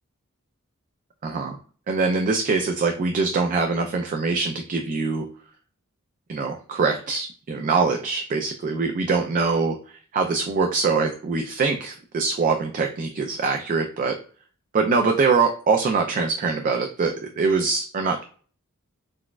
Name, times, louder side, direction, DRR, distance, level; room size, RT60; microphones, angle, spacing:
voice 1, 1.2-1.6 1.9-5.3 6.3-14.2 14.7-18.2, right 4 dB, 40° right, 3 dB, 0.3 m, -23 dB
4.0 x 2.2 x 2.3 m, 0.43 s
head